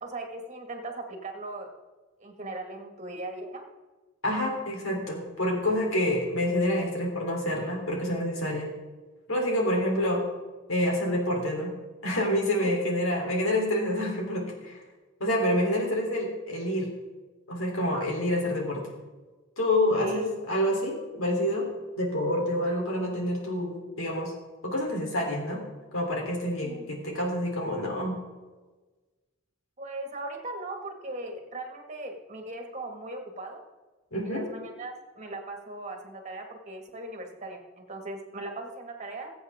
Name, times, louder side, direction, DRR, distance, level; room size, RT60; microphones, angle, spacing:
voice 1, 0.0-1.7 2.2-3.6 12.6-12.8 17.9-18.1 20.0-20.3 26.6-26.9 29.8-33.6 34.3-39.3, right 2 dB, 35° right, 3 dB, 1.9 m, -38 dB
voice 2, 4.2-8.7 9.3-10.2 10.7-11.7 12.0-14.8 15.2-16.9 17.5-18.8 19.6-21.7 22.0-24.3 24.6-25.6 25.9-28.2 34.1-34.4, left 1 dB, 80° left, 0 dB, 3.5 m, -27 dB
21.5 x 8.0 x 3.7 m, 1.3 s
head